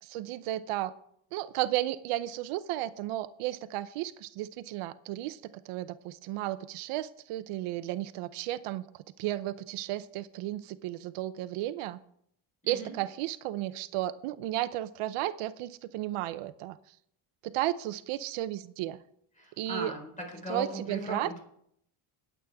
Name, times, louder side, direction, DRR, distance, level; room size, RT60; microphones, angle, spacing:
voice 1, 0.0-0.9 1.3-12.0 12.7-16.8 17.4-19.0 19.6-19.9 20.5-21.4, right 14 dB, 90° right, 13 dB, 0.8 m, -34 dB
voice 2, 19.4-21.4, right 1 dB, 15° left, 1 dB, 4.2 m, -38 dB
20.0 x 8.3 x 3.5 m, 0.68 s
cardioid pair, 160°, 50 cm